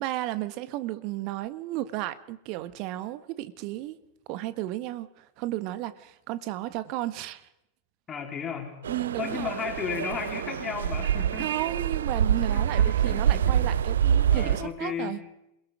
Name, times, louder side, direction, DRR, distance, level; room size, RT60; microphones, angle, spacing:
voice 1, 0.0-4.0 4.3-7.4 8.9-9.5 11.4-15.2, right 15 dB, 45° right, 13 dB, 1.6 m, -33 dB
voice 2, 8.1-8.8 9.2-11.6 12.5-13.6 14.3-15.2, left 7 dB, 25° left, 3 dB, 4.1 m, -34 dB
sound 1, 8.8-14.6, right 9 dB, 65° right, 0.8 m, -25 dB
28.0 x 21.5 x 5.1 m, 0.85 s
figure-of-eight pair, 90°, 0 cm